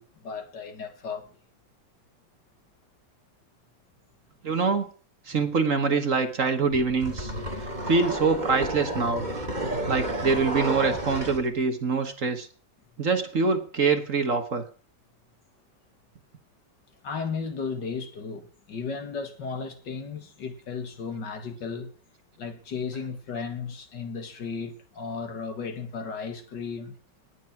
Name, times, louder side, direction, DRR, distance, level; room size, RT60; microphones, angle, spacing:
voice 1, 0.0-1.4 17.0-21.9 22.4-26.9, left 5 dB, 65° left, 2.3 m, -35 dB
voice 2, 4.4-4.8 5.3-7.3 7.9-9.3 9.9-12.5 13.0-14.6, right 4 dB, 45° right, 1.7 m, -24 dB
sound 1, 6.7-11.4, right 1 dB, 25° right, 2.5 m, -31 dB
18.5 x 9.5 x 5.9 m
omnidirectional pair, 2.0 m